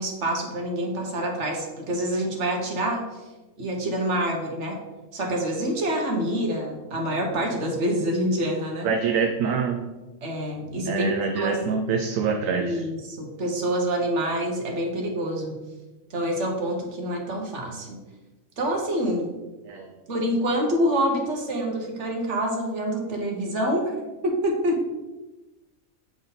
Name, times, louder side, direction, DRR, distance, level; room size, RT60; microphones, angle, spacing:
voice 1, 0.0-3.0 3.6-4.8 5.1-8.9 10.2-11.1 11.3-11.6 12.6-15.5 16.1-18.0 18.6-19.3 20.1-23.9 24.2-24.8, equal, 60° right, 0 dB, 1.5 m, -26 dB
voice 2, 8.8-9.8 10.9-12.8 19.6-19.9, right 5 dB, 75° right, 3 dB, 1.0 m, -25 dB
7.6 x 4.0 x 4.0 m, 1.1 s
omnidirectional pair, 1.4 m